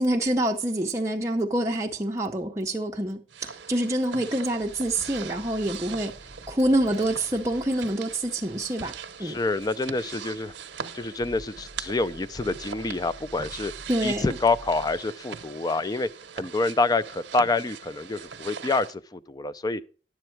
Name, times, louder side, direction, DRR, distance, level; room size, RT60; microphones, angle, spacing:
voice 1, 0.0-6.1 6.5-8.9 9.2-9.4 13.9-14.4, right 1 dB, 15° right, 0.6 m, -26 dB
sound 1, 3.3-18.9, right 6 dB, 85° right, 0.8 m, -41 dB
sound 2, 4.6-15.0, right 1 dB, 55° left, 6.2 m, -49 dB
voice 2, 9.2-10.5 10.9-13.7 14.0-16.1 16.4-19.8, left 3 dB, 20° left, 0.3 m, -27 dB
10.0 x 7.8 x 4.5 m
head